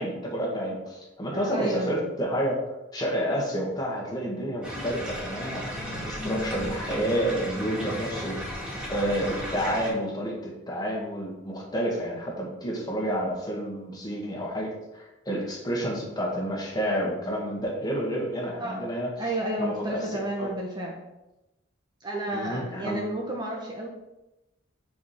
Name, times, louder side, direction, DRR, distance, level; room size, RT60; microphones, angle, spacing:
voice 1, 0.0-2.6 2.9-5.7 6.1-8.5 8.9-19.1 19.6-20.5 22.3-23.0, equal, 20° left, -2 dB, 1.7 m, -30 dB
voice 2, 1.3-1.9 18.6-18.9 19.2-21.0 22.0-23.9, right 1 dB, 20° right, -1 dB, 1.0 m, -31 dB
sound 1, 4.6-9.9, equal, 5° right, 2.2 m, -34 dB
4.9 x 4.8 x 5.8 m, 0.96 s
head